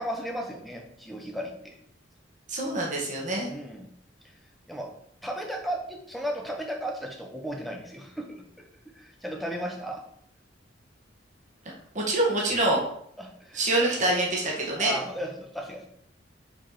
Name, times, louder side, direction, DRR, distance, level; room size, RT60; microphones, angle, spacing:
voice 1, 0.0-1.8 3.5-3.9 4.7-4.9 5.2-8.4 8.8-10.0 13.2-13.7 14.8-15.9, equal, ahead, 1 dB, 1.0 m, -35 dB
voice 2, 2.5-3.5 12.0-12.8 13.5-15.0, right 2 dB, 40° right, -3 dB, 1.6 m, -25 dB
5.7 x 4.3 x 5.0 m, 0.69 s
head